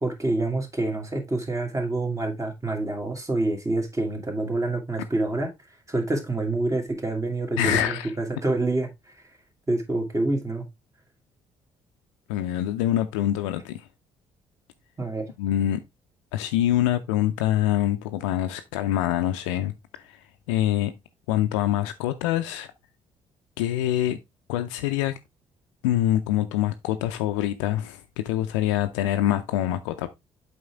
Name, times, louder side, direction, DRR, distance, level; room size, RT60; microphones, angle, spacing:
voice 1, 0.0-5.5 5.9-8.9 9.2-9.3 9.7-10.7 15.0-15.3, right 2 dB, 20° right, 2.3 m, -27 dB
voice 2, 7.6-8.1 12.3-13.8 15.4-15.8 16.3-19.7 20.5-20.9 21.3-22.7 23.6-24.2 24.5-25.1 25.8-30.1, left 12 dB, 75° left, 0.5 m, -25 dB
7.9 x 4.8 x 3.3 m
figure-of-eight pair, 45°, 16 cm